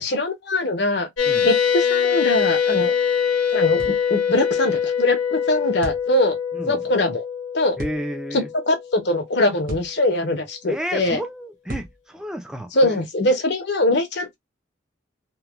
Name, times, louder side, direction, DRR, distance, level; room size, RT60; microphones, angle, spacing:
voice 1, 0.0-1.1 1.4-3.0 3.5-6.4 6.7-7.2 7.5-7.8 8.3-11.2 12.7-14.4, left 1 dB, 55° left, 0.8 m, -22 dB
sound 1, 1.2-9.2, left 7 dB, 85° left, 0.9 m, -23 dB
sound 2, 3.8-4.0 5.8-6.1 7.8-8.0 9.7-10.0 11.7-12.0, equal, 45° right, 1.0 m, -33 dB
voice 2, 6.5-6.8 7.8-8.5 10.7-13.0, equal, 5° right, 0.4 m, -31 dB
3.0 x 2.2 x 2.3 m
head